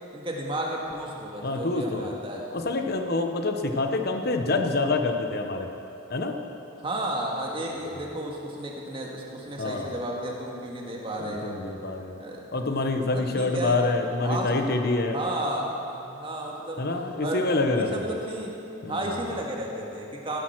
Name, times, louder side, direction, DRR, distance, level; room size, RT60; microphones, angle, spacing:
voice 1, 0.1-2.5 6.8-11.6 12.2-12.4 12.9-13.9 14.2-14.5 15.1-16.8 17.2-18.6 18.9-20.4, right 1 dB, 25° right, -2 dB, 1.9 m, -33 dB
voice 2, 1.4-2.2 2.5-5.7 6.1-6.4 9.6-10.0 11.2-12.2 12.5-15.2 16.8-18.0 18.8-19.1, left 2 dB, 50° left, 5 dB, 1.0 m, -26 dB
15.0 x 11.0 x 6.1 m, 2.9 s
head